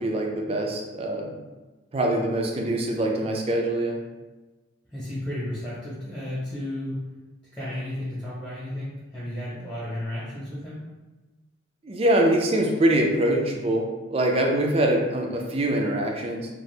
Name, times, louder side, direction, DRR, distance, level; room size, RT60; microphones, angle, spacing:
voice 1, 0.0-1.4 1.9-4.0 11.8-16.5, right 1 dB, 30° right, 1 dB, 0.4 m, -24 dB
voice 2, 4.8-7.0 7.5-10.8, left 1 dB, 5° left, -10 dB, 0.9 m, -33 dB
2.7 x 2.5 x 3.2 m, 1.2 s
head